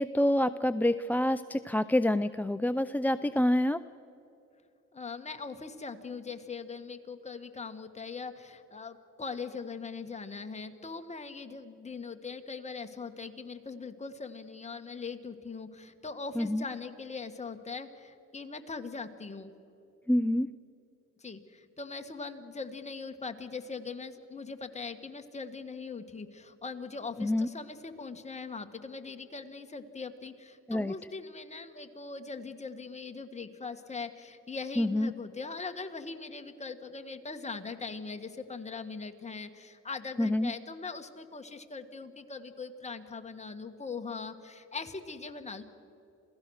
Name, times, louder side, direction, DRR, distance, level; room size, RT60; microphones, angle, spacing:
voice 1, 0.0-3.8 16.4-16.7 20.1-20.5 27.2-27.5 30.7-30.9 34.8-35.1 40.2-40.5, left 1 dB, 5° left, 12 dB, 0.4 m, -27 dB
voice 2, 4.9-19.5 21.2-45.6, left 4 dB, 20° left, 6 dB, 1.7 m, -41 dB
27.5 x 17.0 x 6.5 m, 2.9 s
cardioid pair, 90°, 30 cm